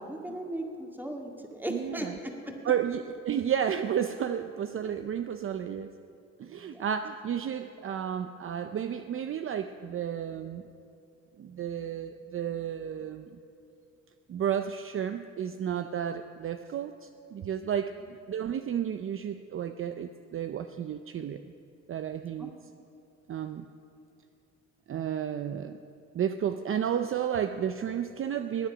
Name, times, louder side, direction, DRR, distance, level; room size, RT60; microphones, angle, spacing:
voice 1, 0.0-2.6 6.7-6.9 22.4-22.5, right 1 dB, 5° right, 1 dB, 2.0 m, -37 dB
voice 2, 1.7-2.1 2.6-5.9 6.4-10.6 11.4-13.4 14.3-17.9 18.3-21.4 21.9-22.5 23.3-23.7 24.9-25.8 26.1-28.7, right 9 dB, 45° right, 9 dB, 0.5 m, -32 dB
19.5 x 9.5 x 6.1 m, 2.6 s
cardioid pair, 90°, 30 cm